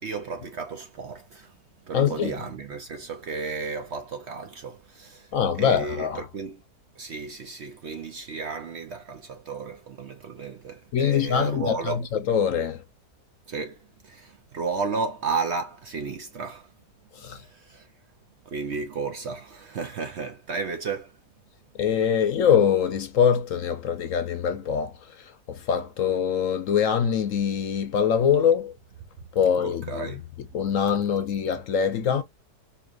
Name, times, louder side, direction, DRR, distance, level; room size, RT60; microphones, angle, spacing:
voice 1, 0.0-1.6 1.8-6.6 7.0-12.0 13.5-16.7 17.2-17.9 18.5-21.2 29.6-30.2, right 4 dB, 60° right, 0.8 m, -33 dB
voice 2, 1.9-2.3 5.3-6.3 10.9-12.8 17.2-17.4 21.8-24.9 25.2-28.7 29.3-30.1 30.5-32.2, left 8 dB, 65° left, 1.0 m, -23 dB
4.4 x 2.8 x 2.4 m
omnidirectional pair, 1.7 m